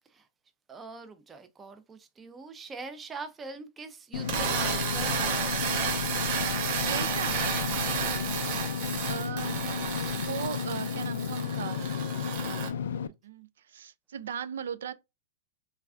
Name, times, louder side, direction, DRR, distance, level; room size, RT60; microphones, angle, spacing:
voice 1, 0.7-5.8 7.6-7.9, right 4 dB, 15° right, 0.4 m, -43 dB
Engine / Mechanisms, 4.1-13.1, left 7 dB, 85° left, 0.3 m, -33 dB
sound 1, 4.2-12.7, right 6 dB, 45° right, 0.8 m, -32 dB
voice 2, 6.8-7.5 9.1-11.8 12.6-14.9, right 8 dB, 85° right, 0.3 m, -38 dB
3.2 x 2.3 x 2.3 m
supercardioid pair, 155°, 0 cm